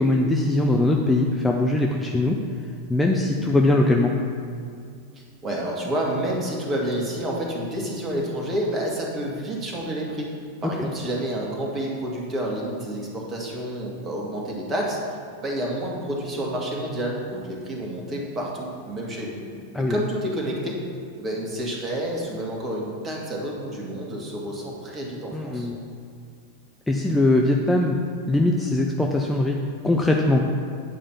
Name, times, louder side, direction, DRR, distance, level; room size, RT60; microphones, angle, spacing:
voice 1, 0.0-2.4 2.9-4.1 10.8-10.9 19.7-20.0 25.3-25.8 26.9-28.0 28.3-30.5, left 2 dB, 5° left, 0 dB, 0.6 m, -21 dB
voice 2, 5.4-10.3 10.6-19.4 19.8-20.8 21.2-25.7, right 1 dB, 25° right, -2 dB, 2.1 m, -29 dB
9.5 x 5.0 x 7.1 m, 2.3 s
figure-of-eight pair, 90°, 0 cm